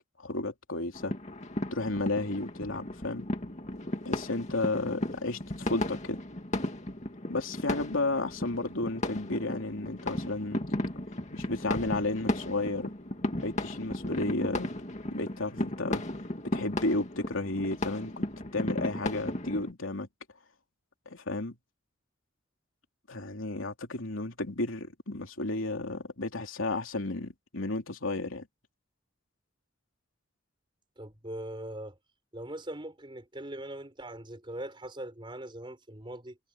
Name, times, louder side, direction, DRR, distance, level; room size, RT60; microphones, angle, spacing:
voice 1, 0.2-1.1 1.7-3.3 4.0-6.2 7.3-10.6 11.3-12.9 13.4-14.8 15.1-16.0 16.5-18.2 18.5-20.1 21.1-21.6 23.1-28.5, left 2 dB, 85° left, 3.1 m, -33 dB
sound 1, 0.9-19.7, left 1 dB, 35° left, 2.3 m, -35 dB
voice 2, 31.0-32.0 32.3-36.4, right 1 dB, 25° right, 4.6 m, -41 dB
head